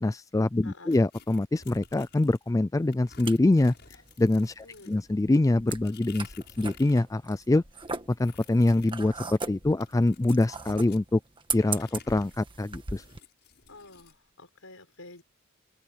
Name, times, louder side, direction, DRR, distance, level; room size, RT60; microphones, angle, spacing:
voice 1, 0.0-3.7 4.2-7.6 8.2-11.2 11.5-13.0, left 2 dB, 15° left, 0.3 m, -25 dB
voice 2, 0.6-1.0 4.6-5.0 13.7-15.2, left 2 dB, 70° left, 6.3 m, -49 dB
sound 1, 0.9-2.5 2.9-7.1 7.3-11.1 11.6-14.2, left 5 dB, 50° left, 7.8 m, -53 dB
sound 2, 2.8-13.2, right 4 dB, 25° right, 1.6 m, -39 dB
head